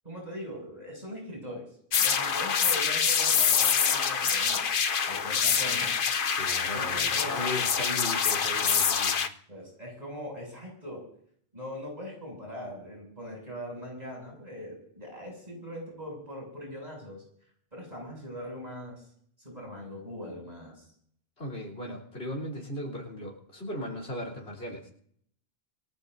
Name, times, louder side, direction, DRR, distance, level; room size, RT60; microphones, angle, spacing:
voice 1, 0.0-1.7 2.0-4.6 5.1-5.9 6.3-7.4 9.5-11.0 11.5-17.2 17.7-19.0 19.4-20.8, equal, 40° right, -1 dB, 7.2 m, -41 dB
sound 1, 1.9-9.3, left 6 dB, 60° left, 1.0 m, -26 dB
voice 2, 6.3-9.3 21.4-24.9, left 1 dB, 85° left, 0 dB, 3.8 m, -37 dB
27.5 x 17.5 x 2.7 m, 0.65 s
omnidirectional pair, 1.1 m